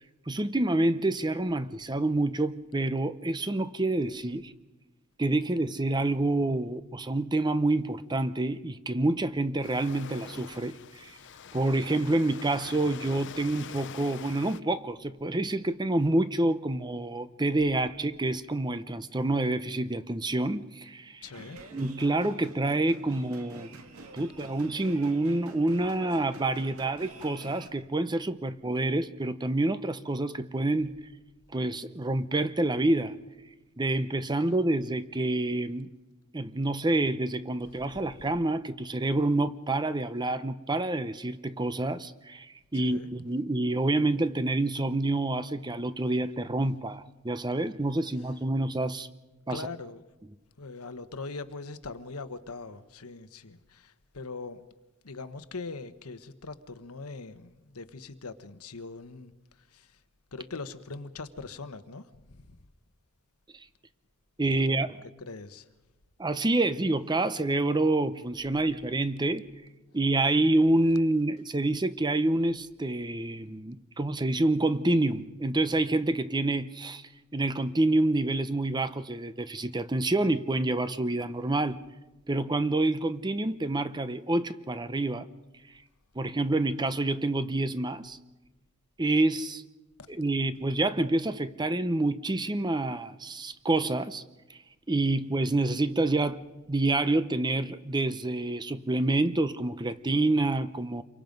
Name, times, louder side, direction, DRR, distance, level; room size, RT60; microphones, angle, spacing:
voice 1, 0.3-4.5 5.2-11.1 11.5-21.2 21.7-23.8 24.1-30.9 31.5-33.2 33.8-35.9 36.3-49.1 49.5-49.6 64.4-65.0 66.2-69.5 69.9-77.0 77.3-81.8 82.3-85.3 86.2-88.2 89.0-89.6 90.1-94.2 94.5-94.6 94.9-96.4 96.7-101.0, right 2 dB, 20° right, 0.7 m, -27 dB
Waves surf, 9.6-14.6, left 7 dB, 55° left, 0.7 m, -45 dB
voice 2, 21.2-21.6 34.3-34.4 37.9-38.3 42.7-43.1 49.5-50.0 50.6-54.6 55.0-60.0 60.3-62.7 64.6-64.9 65.2-65.7 90.0-90.1, left 3 dB, 85° left, 1.2 m, -42 dB
sound 1, 21.2-27.7, right 2 dB, 75° right, 2.2 m, -47 dB
28.5 x 24.0 x 5.3 m
head